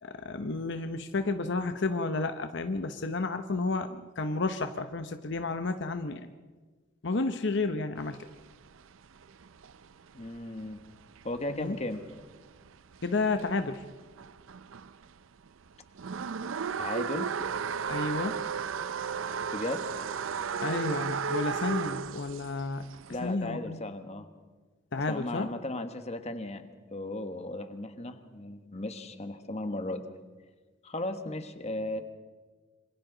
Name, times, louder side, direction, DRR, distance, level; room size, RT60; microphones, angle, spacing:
voice 1, 0.0-6.3 7.0-8.2 11.5-11.8 13.0-13.8 17.9-18.4 20.6-22.9 23.2-23.8 24.9-25.5, left 3 dB, 60° left, 8 dB, 0.9 m, -31 dB
sound 1, 8.0-15.1 15.4-23.4, right 6 dB, 75° right, 0.5 m, -35 dB
voice 2, 10.1-10.8 11.2-12.0 16.8-17.3 19.5-19.9 23.1-24.3 25.0-30.0 30.8-32.0, left 1 dB, 30° left, 8 dB, 1.3 m, -36 dB
27.5 x 25.5 x 3.9 m, 1.4 s
head